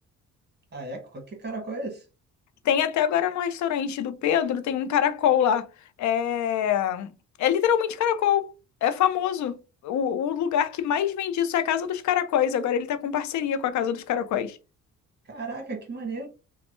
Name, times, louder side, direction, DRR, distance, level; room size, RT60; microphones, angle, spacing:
voice 1, 0.7-2.0 15.3-16.3, right 3 dB, 35° right, 1.3 m, -35 dB
voice 2, 2.6-5.7 6.0-7.1 7.4-8.5 8.8-9.6 9.8-14.6, left 9 dB, 70° left, 0.5 m, -24 dB
3.0 x 2.2 x 3.0 m
cardioid pair, 90°, 30 cm